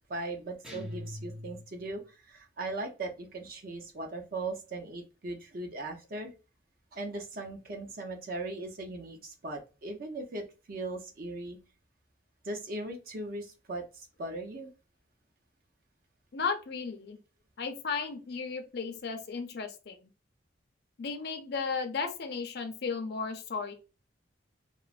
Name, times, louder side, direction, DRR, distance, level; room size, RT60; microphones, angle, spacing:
voice 1, 0.1-6.3 6.9-11.6 12.4-14.7, right 2 dB, 50° right, 3 dB, 0.6 m, -39 dB
sound 1, 0.6-2.0, left 1 dB, 5° right, 0.5 m, -42 dB
voice 2, 16.3-17.2 17.6-20.1 21.0-23.7, left 5 dB, 55° left, 6 dB, 0.4 m, -35 dB
3.0 x 2.0 x 2.3 m, 0.31 s
head